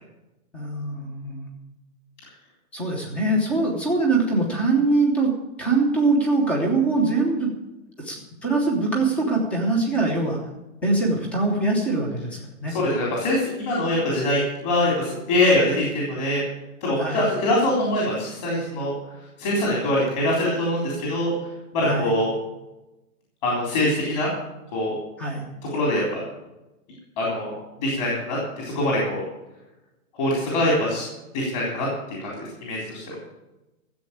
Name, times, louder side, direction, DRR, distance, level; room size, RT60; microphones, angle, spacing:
voice 1, 0.5-1.5 2.7-5.3 5.6-7.5 8.0-10.4 10.8-12.8 16.9-17.3 21.9-22.1 25.2-25.5, right 3 dB, 5° left, 1 dB, 0.8 m, -23 dB
voice 2, 12.7-16.4 16.8-18.9 19.4-21.3 21.7-22.3 23.4-24.3 24.7-24.9 25.7-26.2 27.2-27.5 27.8-29.2 30.2-31.0 31.3-33.2, left 1 dB, 30° left, -4 dB, 3.7 m, -23 dB
14.5 x 7.7 x 8.6 m, 0.99 s
hypercardioid pair, 180°, 43 cm